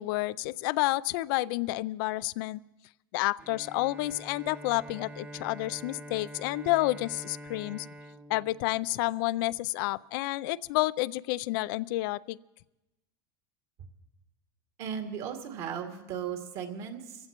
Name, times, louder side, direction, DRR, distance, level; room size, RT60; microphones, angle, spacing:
voice 1, 0.0-2.6 3.1-7.9 8.3-12.4, left 19 dB, 65° left, 19 dB, 0.4 m, -30 dB
Bowed string instrument, 3.4-9.4, right 1 dB, 15° right, 0.8 m, -46 dB
voice 2, 14.8-17.2, right 8 dB, 55° right, 3 dB, 2.3 m, -36 dB
25.0 x 15.5 x 3.0 m, 1.0 s
supercardioid pair, 115°, 12 cm